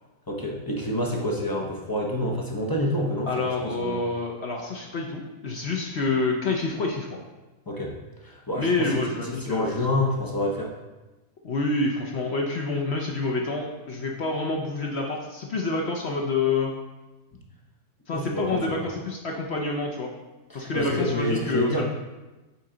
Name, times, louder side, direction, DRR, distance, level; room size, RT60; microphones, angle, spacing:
voice 1, 0.3-4.1 7.7-7.9 8.2-10.7 18.1-18.8 20.5-21.8, left 1 dB, 30° left, -1 dB, 0.4 m, -28 dB
voice 2, 3.3-7.1 8.5-9.7 11.4-16.7 18.1-20.1 20.5-21.8, left 3 dB, 55° left, 0 dB, 0.8 m, -27 dB
8.4 x 4.3 x 3.8 m, 1.1 s
omnidirectional pair, 1.7 m